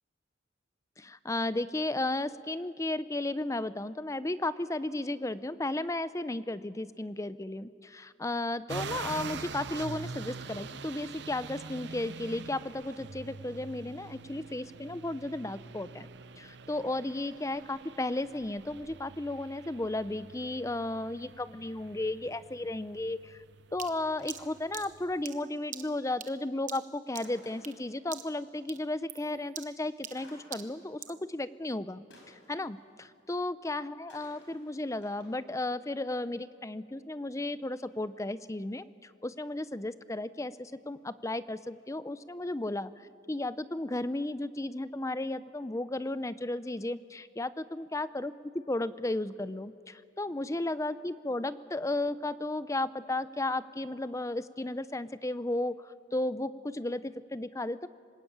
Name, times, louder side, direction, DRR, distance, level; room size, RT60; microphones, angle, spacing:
voice 1, 1.0-16.1 16.4-23.4 23.7-42.9 43.3-57.9, left 2 dB, 15° left, 15 dB, 0.6 m, -34 dB
sound 1, 8.7-25.2, right 4 dB, 60° right, 0.7 m, -45 dB
sound 2, 23.8-27.8 28.1-28.4 28.7-31.2, right 9 dB, 40° right, 1.1 m, -45 dB
sound 3, 24.2-24.9 27.2-28.3 30.2-31.0 32.1-33.2 34.1-35.3, left 2 dB, 70° left, 5.9 m, -57 dB
26.0 x 20.0 x 8.8 m, 2.3 s
head